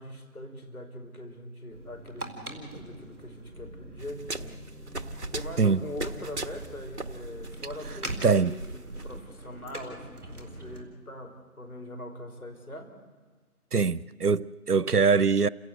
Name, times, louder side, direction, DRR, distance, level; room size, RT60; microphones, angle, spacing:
voice 1, 0.0-4.6 5.3-13.0, left 1 dB, 70° left, 5.1 m, -42 dB
sound 1, 1.7-10.8, right 1 dB, ahead, 2.5 m, -44 dB
sound 2, 4.0-9.2, right 2 dB, 50° right, 1.3 m, -38 dB
voice 2, 8.2-8.5 13.7-15.5, right 5 dB, 90° right, 0.8 m, -23 dB
29.0 x 17.0 x 7.9 m
figure-of-eight pair, 165°, 45 cm